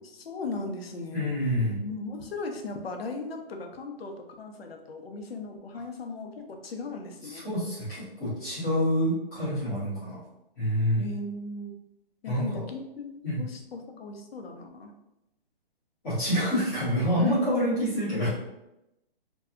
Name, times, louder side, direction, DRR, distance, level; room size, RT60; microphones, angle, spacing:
voice 1, 0.0-1.3 1.8-7.5 11.0-11.7 12.2-14.9, left 3 dB, 85° left, 4 dB, 0.6 m, -37 dB
voice 2, 1.1-1.8 7.2-10.2 10.6-11.0 12.2-12.6 13.2-13.4 16.0-18.3, equal, 5° left, -13 dB, 0.5 m, -27 dB
2.6 x 2.2 x 2.4 m, 0.89 s
hypercardioid pair, 165°, 29 cm